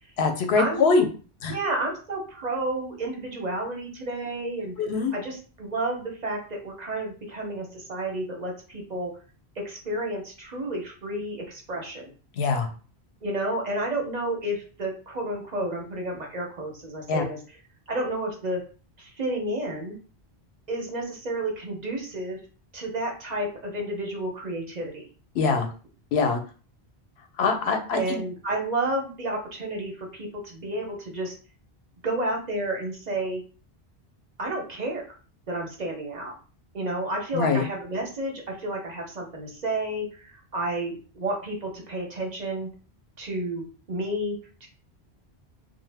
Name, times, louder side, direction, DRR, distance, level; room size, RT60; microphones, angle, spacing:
voice 1, 0.2-1.1 1.4-1.5 4.8-5.1 12.4-12.7 17.1-17.2 25.3-25.7 26.1-26.4 27.4-28.2 37.3-37.6, left 4 dB, 85° left, 5 dB, 0.9 m, -23 dB
voice 2, 1.5-4.7 5.1-9.1 9.6-12.1 13.2-17.4 17.9-18.6 19.0-20.0 20.7-22.4 22.7-25.1 27.9-31.3 32.0-33.4 34.4-35.0 35.5-36.3 36.7-42.7 43.2-44.7, right 1 dB, 45° right, 1 dB, 0.7 m, -31 dB
2.7 x 2.1 x 3.3 m, 0.38 s
omnidirectional pair, 1.0 m